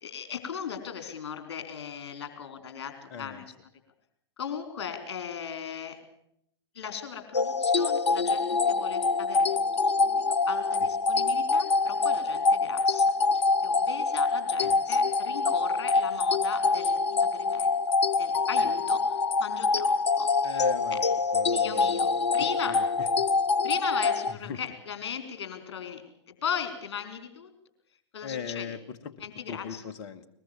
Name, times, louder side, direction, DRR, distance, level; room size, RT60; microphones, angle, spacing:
voice 1, 0.0-3.5 4.4-6.0 6.7-9.5 9.7-17.7 18.2-20.7 20.9-21.0 21.5-22.8 23.6-26.0 26.4-27.5 28.1-28.7 29.2-29.8, left 7 dB, 60° left, 7 dB, 4.4 m, -38 dB
voice 2, 3.1-3.5 10.8-10.9 14.6-15.0 18.6-18.8 20.4-21.0 21.3-22.3 22.7-23.3 24.3-24.6 28.2-29.1 29.5-30.3, left 7 dB, 45° left, 9 dB, 1.8 m, -40 dB
sound 1, 7.3-24.3, left 4 dB, 75° left, 0.8 m, -25 dB
22.0 x 21.0 x 7.2 m, 0.72 s
figure-of-eight pair, 100°, 15 cm